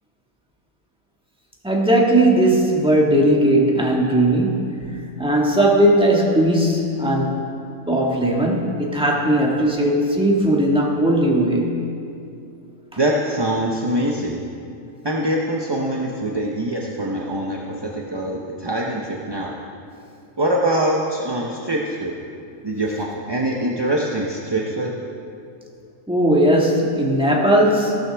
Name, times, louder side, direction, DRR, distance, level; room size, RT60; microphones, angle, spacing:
voice 1, 1.6-7.5 7.9-11.8 26.1-28.0, right 1 dB, 5° right, -3 dB, 1.5 m, -18 dB
voice 2, 13.0-14.4 15.0-19.5 20.4-22.2 22.6-24.9, right 1 dB, 25° right, -2 dB, 0.6 m, -23 dB
15.5 x 13.0 x 3.5 m, 2.5 s
omnidirectional pair, 1.5 m